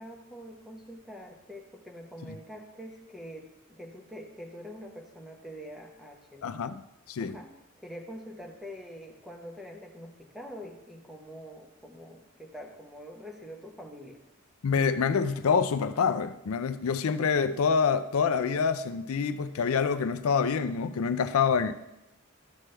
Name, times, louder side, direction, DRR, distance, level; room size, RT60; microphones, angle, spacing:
voice 1, 0.0-6.6 7.2-14.2, equal, ahead, 0.9 m, -45 dB
voice 2, 6.4-6.7 7.1-7.4 14.6-21.7, left 6 dB, 80° left, 0.4 m, -26 dB
12.5 x 6.1 x 3.3 m
head